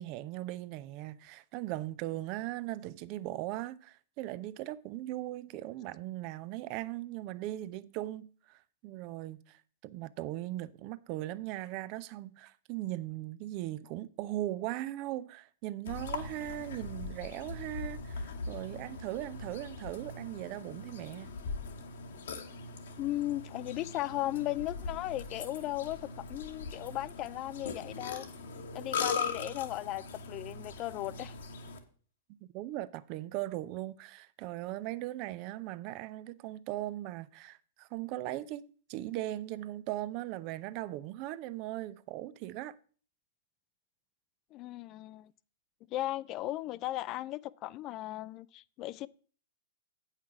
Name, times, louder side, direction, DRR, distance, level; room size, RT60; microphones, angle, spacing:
voice 1, 0.0-21.4 32.5-42.7, right 15 dB, 45° right, 0.5 m, -39 dB
Burping eructation, 15.9-31.8, left 4 dB, 70° left, 1.3 m, -40 dB
voice 2, 23.0-26.0 26.3-28.2 28.7-31.3 44.5-45.3 45.9-49.1, left 15 dB, 40° left, 0.4 m, -36 dB
8.5 x 5.7 x 5.9 m
hypercardioid pair, 105°, 0 cm